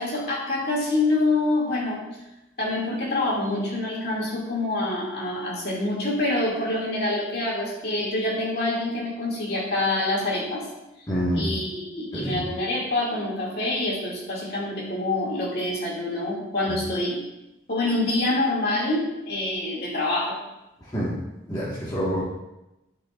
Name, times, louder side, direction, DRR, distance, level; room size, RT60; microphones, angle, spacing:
voice 1, 0.0-2.0 2.6-10.7 11.3-17.2 17.7-20.4, left 2 dB, 55° left, -5 dB, 2.4 m, -26 dB
voice 2, 11.1-11.5 12.1-12.4 16.7-16.8 20.8-21.2 21.5-22.2, equal, 20° left, -8 dB, 1.5 m, -27 dB
12.0 x 5.8 x 2.5 m, 0.95 s
head